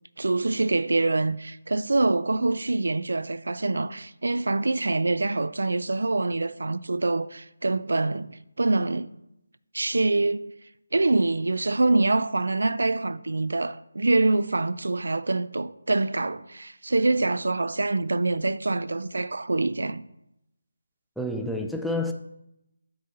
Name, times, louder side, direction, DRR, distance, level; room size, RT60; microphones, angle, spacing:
voice 1, 0.2-9.1 9.7-10.5 10.9-20.0, right 2 dB, 70° right, 0.4 m, -25 dB
voice 2, 21.2-22.1, left 1 dB, ahead, 0.4 m, -28 dB
8.0 x 4.1 x 6.5 m
figure-of-eight pair, 160°, 0 cm